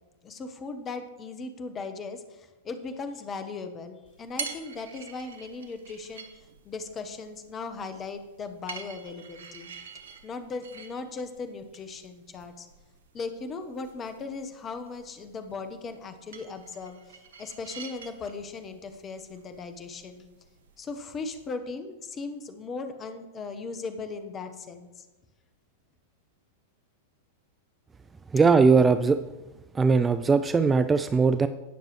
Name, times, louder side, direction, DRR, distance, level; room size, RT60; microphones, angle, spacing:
voice 1, 0.2-9.7 10.2-12.7 13.1-20.3 20.8-25.1, left 4 dB, 25° left, 8 dB, 1.1 m, -38 dB
sound 1, 4.1-21.6, right 6 dB, 70° right, 1.1 m, -46 dB
voice 2, 28.3-29.2 29.7-31.5, right 4 dB, 15° right, 11 dB, 0.4 m, -20 dB
17.5 x 6.6 x 3.2 m, 1.1 s
figure-of-eight pair, 95°, 0 cm